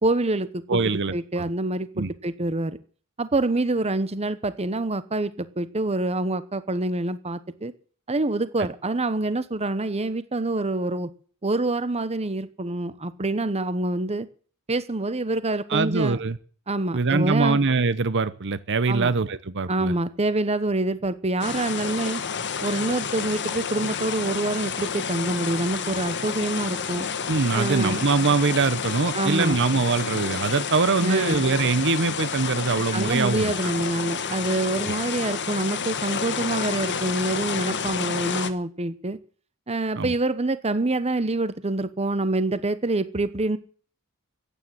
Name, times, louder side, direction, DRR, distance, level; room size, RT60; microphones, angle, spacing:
voice 1, 0.0-0.8 1.1-2.8 3.2-7.7 8.1-11.1 11.4-14.3 14.7-16.2 16.7-17.6 18.9-19.1 19.7-22.2 22.6-27.1 27.5-28.1 29.1-29.6 31.0-31.4 32.9-39.2 39.7-43.6, right 2 dB, 30° right, 14 dB, 1.0 m, -26 dB
voice 2, 0.7-1.4 2.0-2.1 15.7-16.4 16.9-19.9 27.3-33.7 34.9-35.0 39.9-40.1, right 4 dB, 55° right, 15 dB, 0.9 m, -23 dB
sound 1, 21.4-38.5, left 6 dB, 55° left, 1.5 m, -30 dB
15.0 x 10.0 x 7.8 m, 0.43 s
head